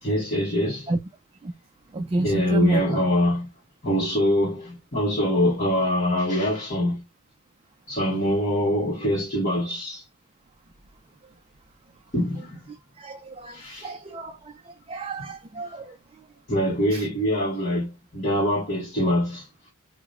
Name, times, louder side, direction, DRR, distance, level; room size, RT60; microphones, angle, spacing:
voice 1, 0.0-0.9 2.2-3.5 3.8-7.0 7.9-10.0 12.1-12.7 13.5-13.9 15.2-15.3 16.5-19.5, left 1 dB, 35° left, 1.1 m, -24 dB
voice 2, 1.9-2.8 13.0-16.0 16.9-17.0, right 2 dB, 25° right, 0.3 m, -29 dB
4.7 x 2.1 x 2.3 m
head